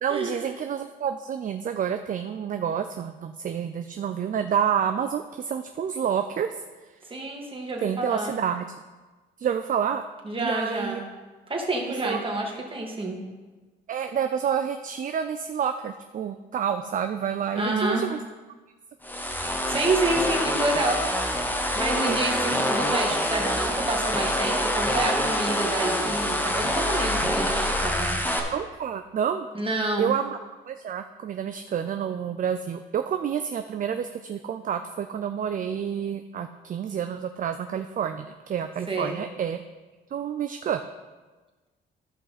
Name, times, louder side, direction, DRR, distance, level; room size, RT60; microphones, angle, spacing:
voice 1, 0.0-6.5 7.8-8.7 9.4-10.0 10.4-11.0 12.0-12.3 13.9-18.2 22.0-22.2 28.5-29.5 30.0-30.4 30.7-39.6 40.1-40.8, right 8 dB, 45° right, 8 dB, 0.5 m, -29 dB
voice 2, 7.1-8.4 10.3-11.0 11.5-13.2 17.5-18.1 19.7-21.0 21.7-28.2 29.5-30.2 38.9-39.2, right 2 dB, 25° right, 0 dB, 2.0 m, -28 dB
sound 1, 19.0-28.4, equal, 10° left, 1.3 m, -26 dB
13.0 x 5.5 x 4.2 m, 1.3 s
cardioid pair, 90°, 20 cm